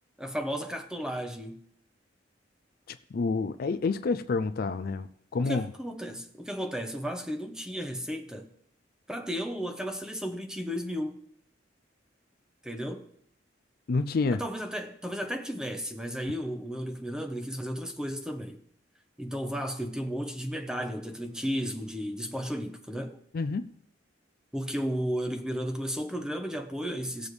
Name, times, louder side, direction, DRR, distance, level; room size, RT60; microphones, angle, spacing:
voice 1, 0.2-1.6 5.4-8.5 9.1-11.2 12.6-13.1 14.3-18.6 19.2-23.2 24.5-27.3, equal, 5° right, 0.9 m, -34 dB
voice 2, 2.9-5.1 5.3-5.7 13.9-14.4 23.3-23.7, left 4 dB, 50° left, 0.4 m, -28 dB
17.5 x 7.1 x 3.2 m
head